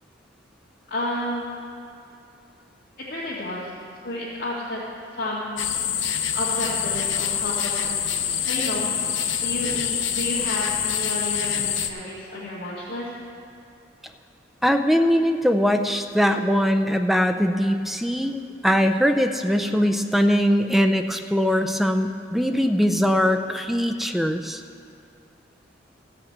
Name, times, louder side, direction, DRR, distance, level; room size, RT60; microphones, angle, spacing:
voice 1, 0.9-1.4 3.1-3.7 4.0-4.8 5.1-5.6 6.3-8.0 8.4-13.1, left 1 dB, 55° left, -9 dB, 2.2 m, -31 dB
sound 1, 5.6-11.9, left 9 dB, 80° left, 0.7 m, -26 dB
voice 2, 14.6-24.6, equal, ahead, 7 dB, 0.4 m, -21 dB
14.5 x 5.8 x 7.9 m, 2.4 s
head